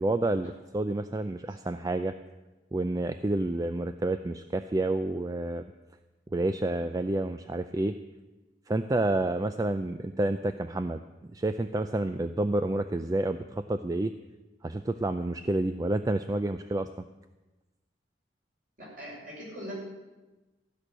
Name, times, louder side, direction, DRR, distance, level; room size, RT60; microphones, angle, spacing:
voice 1, 0.0-2.1 2.7-5.6 6.3-8.0 8.7-11.0 11.3-14.1 14.6-17.1, right 2 dB, 20° right, 10 dB, 0.4 m, -29 dB
voice 2, 18.8-19.7, equal, 45° right, -5 dB, 6.5 m, -41 dB
14.5 x 6.2 x 10.0 m, 1.1 s
head